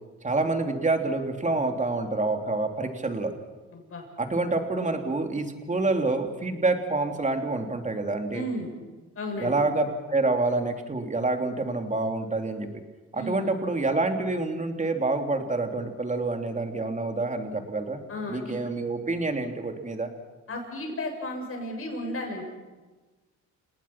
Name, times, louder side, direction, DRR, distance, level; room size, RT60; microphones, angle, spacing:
voice 1, 0.2-3.3 4.2-8.4 9.4-12.7 13.1-18.0 18.3-20.1, right 2 dB, 25° right, 4 dB, 3.1 m, -27 dB
voice 2, 3.7-4.0 8.3-8.7 9.2-9.6 13.1-13.4 18.1-18.7 20.5-22.4, left 1 dB, 45° left, 2 dB, 7.5 m, -34 dB
29.0 x 18.5 x 6.0 m, 1.2 s
cardioid pair, 90°, 30 cm